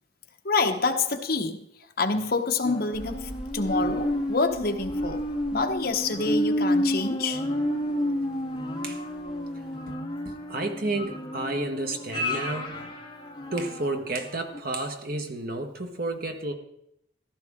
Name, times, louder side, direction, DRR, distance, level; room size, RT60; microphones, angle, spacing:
voice 1, 0.4-1.6 2.0-5.2 5.5-7.4, left 3 dB, 55° left, 4 dB, 1.2 m, -27 dB
sound 1, 2.6-14.1 14.5-14.6, equal, 25° left, 1.9 m, -30 dB
Rain, 2.9-9.9, equal, 5° right, 1.5 m, -47 dB
voice 2, 10.2-13.0 13.5-16.5, right 2 dB, 50° right, 4 dB, 1.5 m, -31 dB
15.0 x 13.0 x 3.8 m, 0.77 s
head